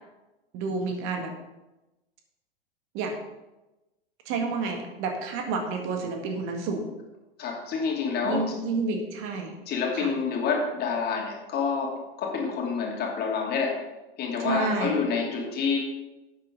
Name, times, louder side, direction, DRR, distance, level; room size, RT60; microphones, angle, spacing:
voice 1, 0.5-1.3 2.9-3.2 4.3-6.9 8.2-9.5 9.9-10.1 14.4-15.0, right 3 dB, 40° right, 4 dB, 1.8 m, -30 dB
voice 2, 7.4-8.4 9.7-13.8 14.2-15.8, left 5 dB, 30° left, 0 dB, 2.7 m, -28 dB
11.0 x 8.7 x 3.9 m, 1.0 s
figure-of-eight pair, 85°, 31 cm